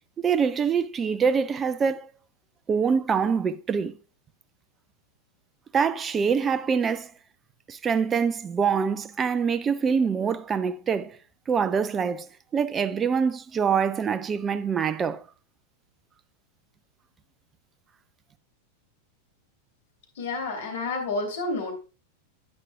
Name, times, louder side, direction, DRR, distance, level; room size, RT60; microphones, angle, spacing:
voice 1, 0.2-2.1 2.7-4.0 5.7-7.1 7.7-11.2 11.5-15.2, right 6 dB, 20° right, 0.5 m, -25 dB
voice 2, 20.2-21.7, left 3 dB, 60° left, 3.0 m, -29 dB
10.5 x 9.0 x 2.3 m
figure-of-eight pair, 90°, 0 cm